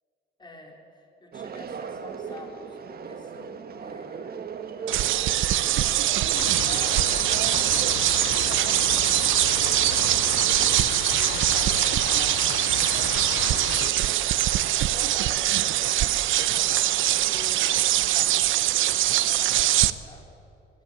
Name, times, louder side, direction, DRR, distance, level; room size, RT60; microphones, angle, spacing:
voice 1, 0.4-5.4 5.8-20.3, left 1 dB, 20° left, 1 dB, 4.0 m, -47 dB
sound 1, 1.3-10.8, right 6 dB, 50° right, 1.7 m, -38 dB
sound 2, 4.9-19.9, right 14 dB, 80° right, 0.8 m, -23 dB
sound 3, 6.3-13.9, left 15 dB, 85° left, 0.5 m, -34 dB
30.0 x 16.5 x 8.6 m, 2.9 s
cardioid pair, 90°, 20 cm